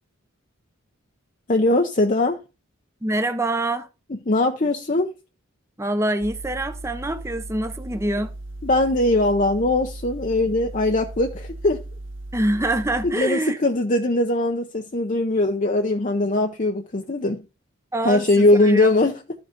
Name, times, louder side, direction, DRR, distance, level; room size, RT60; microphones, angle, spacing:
voice 1, 1.5-2.4 4.1-5.1 8.6-11.8 13.0-17.4 18.0-19.2, left 2 dB, 35° left, 0.7 m, -20 dB
voice 2, 3.0-3.9 5.8-8.3 12.3-13.6 17.9-18.9, right 1 dB, 15° right, 0.7 m, -25 dB
sound 1, 6.2-13.1, right 1 dB, 60° right, 1.5 m, -37 dB
13.0 x 5.2 x 5.2 m
head